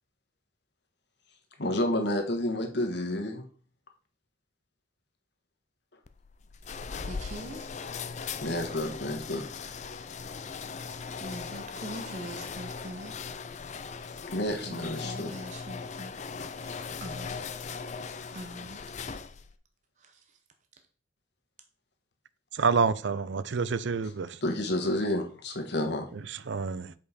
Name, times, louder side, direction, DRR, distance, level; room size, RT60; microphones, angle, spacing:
voice 1, 1.6-3.4 8.4-9.5 14.3-15.3 24.4-26.1, left 1 dB, 55° left, 1.3 m, -30 dB
sound 1, 6.1-19.6, left 5 dB, 35° left, 0.4 m, -39 dB
voice 2, 7.0-7.7 11.2-13.2 14.6-16.2 16.6-16.7 17.0-17.3 18.3-19.0 20.0-20.2, right 1 dB, 35° right, 0.8 m, -43 dB
voice 3, 22.5-24.4 26.3-26.9, right 5 dB, 65° right, 0.5 m, -28 dB
7.0 x 5.2 x 4.2 m
head